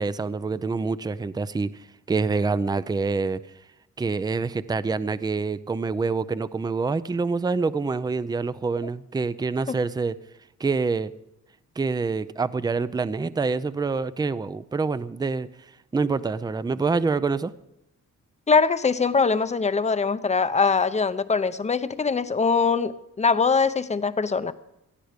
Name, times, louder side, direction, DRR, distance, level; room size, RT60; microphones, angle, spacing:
voice 1, 0.0-1.7 2.1-3.4 4.0-10.2 10.6-11.1 11.8-15.5 15.9-17.5, right 4 dB, 15° right, 0.5 m, -26 dB
voice 2, 18.5-24.5, left 5 dB, 25° left, 0.7 m, -22 dB
18.5 x 13.5 x 5.1 m
cardioid pair, 115°, 30 cm